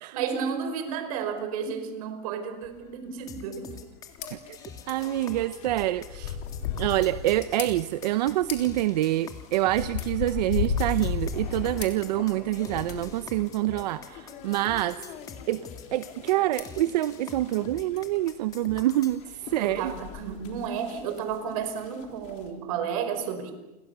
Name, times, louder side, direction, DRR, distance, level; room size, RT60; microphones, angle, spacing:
voice 1, 0.1-3.7 19.6-23.5, right 7 dB, 60° right, 9 dB, 5.1 m, -32 dB
sound 1, 2.6-2.8 3.2-3.3 3.6-13.1 13.8-15.2 15.9-16.0 16.2-16.3 18.0-18.1 18.7-18.9 19.4-20.7, left 6 dB, 80° left, 6.0 m, -36 dB
sound 2, 3.3-19.2, left 6 dB, 15° left, 2.2 m, -45 dB
sound 3, 4.1-22.5, left 9 dB, 35° left, 3.7 m, -46 dB
voice 2, 4.9-6.4 6.8-15.0 15.5-15.6 15.9-19.9, right 15 dB, 90° right, 12 dB, 0.9 m, -26 dB
30.0 x 26.0 x 7.0 m, 0.98 s
supercardioid pair, 175°, 21 cm